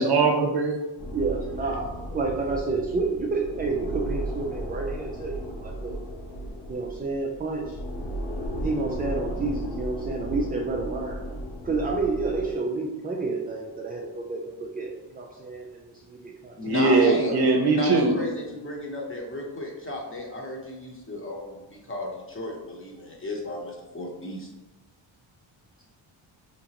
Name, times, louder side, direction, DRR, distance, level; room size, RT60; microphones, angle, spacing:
voice 1, 0.0-0.9 16.7-18.1, right 3 dB, 50° right, 2 dB, 0.7 m, -21 dB
sound 1, 1.0-12.5, equal, 90° left, 1.0 m, -35 dB
voice 2, 1.1-6.0 6.7-7.8 8.6-17.4, right 3 dB, 20° right, 0 dB, 0.3 m, -30 dB
voice 3, 16.6-17.3 17.7-24.5, left 1 dB, 25° left, -2 dB, 0.9 m, -33 dB
3.7 x 2.9 x 2.9 m, 1.0 s
cardioid pair, 85°, 48 cm